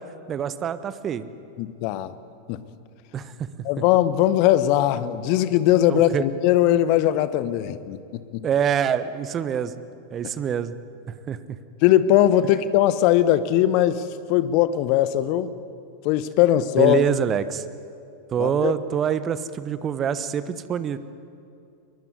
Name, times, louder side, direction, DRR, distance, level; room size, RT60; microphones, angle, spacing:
voice 1, 0.3-1.3 3.1-3.3 5.9-6.2 8.4-9.7 10.1-10.8 11.1-11.6 16.8-17.6 18.3-21.0, right 8 dB, 25° right, 14 dB, 1.2 m, -25 dB
voice 2, 1.6-2.1 2.5-2.6 3.6-8.0 8.3-8.5 11.8-15.5 16.0-17.0 18.4-18.7, left 12 dB, 45° left, 14 dB, 1.2 m, -20 dB
22.0 x 21.5 x 9.7 m, 2.6 s
figure-of-eight pair, 90°, 0 cm